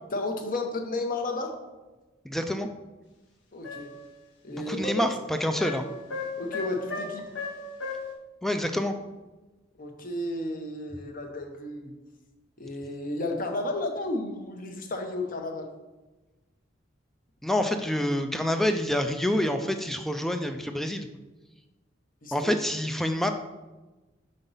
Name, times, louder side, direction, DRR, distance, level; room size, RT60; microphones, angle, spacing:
voice 1, 0.1-1.5 3.5-3.9 4.4-5.0 6.4-7.3 9.8-11.9 12.6-15.7 22.2-22.5, left 2 dB, 45° left, 4 dB, 0.8 m, -32 dB
voice 2, 2.2-2.7 4.5-5.8 8.4-8.9 17.4-21.1 22.3-23.3, left 1 dB, ahead, 6 dB, 0.3 m, -27 dB
sound 1, 3.6-4.0 5.6-8.1, left 3 dB, 75° left, 1.1 m, -36 dB
5.4 x 4.0 x 5.4 m, 1.1 s
head